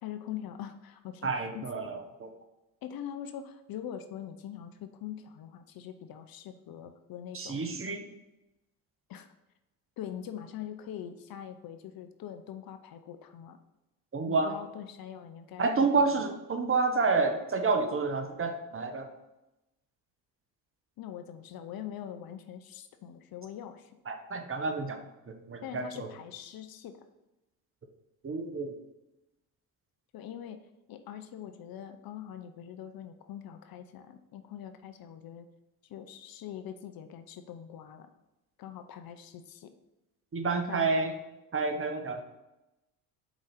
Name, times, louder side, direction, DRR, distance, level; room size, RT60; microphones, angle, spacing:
voice 1, 0.0-1.6 2.8-7.7 9.1-9.3 10.0-13.6 14.3-16.1 21.0-23.9 25.6-27.0 30.1-30.6 30.9-35.5 35.9-38.1 38.6-39.7 40.7-41.0, left 10 dB, 50° left, 8 dB, 0.7 m, -43 dB
voice 2, 1.2-2.3 7.3-8.1 14.1-14.5 15.6-19.1 24.1-25.0 25.3-26.1 28.2-28.7 40.3-41.1 41.5-42.2, right 4 dB, 30° right, 5 dB, 1.0 m, -29 dB
5.0 x 4.0 x 5.6 m, 0.96 s
hypercardioid pair, 60°, 44 cm